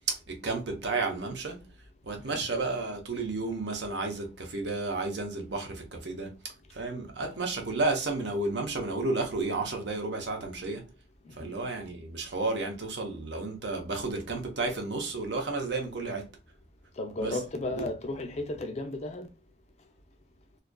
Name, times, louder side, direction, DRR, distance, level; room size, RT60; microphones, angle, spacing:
voice 1, 0.1-1.6 2.0-10.9 11.4-16.3 17.2-17.4 17.8-17.9, right 3 dB, 70° right, 0.7 m, -32 dB
voice 2, 17.0-19.3, left 2 dB, 35° left, 0.4 m, -34 dB
2.5 x 2.4 x 2.2 m
head